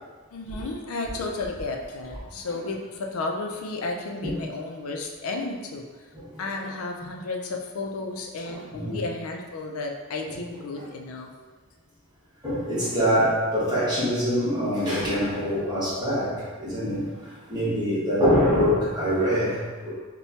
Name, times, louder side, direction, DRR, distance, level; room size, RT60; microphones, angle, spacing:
voice 1, 0.3-6.1 6.4-11.3, left 3 dB, 90° left, 2 dB, 0.5 m, -33 dB
voice 2, 8.4-9.0 10.3-10.4 10.8-10.9 12.4-19.9, equal, 20° right, -10 dB, 1.2 m, -25 dB
4.3 x 2.2 x 2.8 m, 1.4 s
head